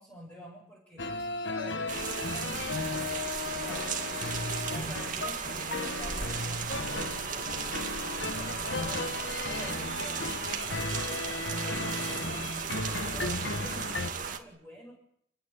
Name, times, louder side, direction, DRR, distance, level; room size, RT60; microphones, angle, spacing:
voice 1, 0.0-2.9 3.5-3.9 4.7-9.1 9.5-12.5 13.1-14.9, equal, 10° left, -3 dB, 7.4 m, -48 dB
sound 1, 1.0-14.1, left 3 dB, 60° left, 1.4 m, -35 dB
sound 2, 1.9-14.4, right 6 dB, 40° right, 2.2 m, -36 dB
29.5 x 16.5 x 9.7 m, 0.70 s
head